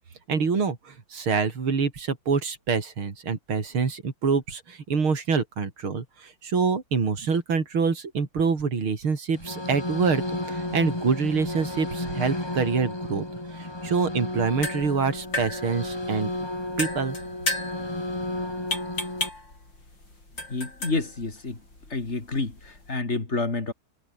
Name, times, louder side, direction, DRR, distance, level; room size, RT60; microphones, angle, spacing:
voice 1, 0.3-16.3 16.8-17.2, right 5 dB, 85° right, 4.1 m, -26 dB
sound 1, 9.3-19.3, left 1 dB, 10° left, 2.7 m, -33 dB
sound 2, 14.3-23.0, left 2 dB, 60° left, 8.8 m, -35 dB
voice 2, 20.5-21.6 21.9-23.7, left 3 dB, 30° left, 3.4 m, -29 dB
omnidirectional pair, 2.2 m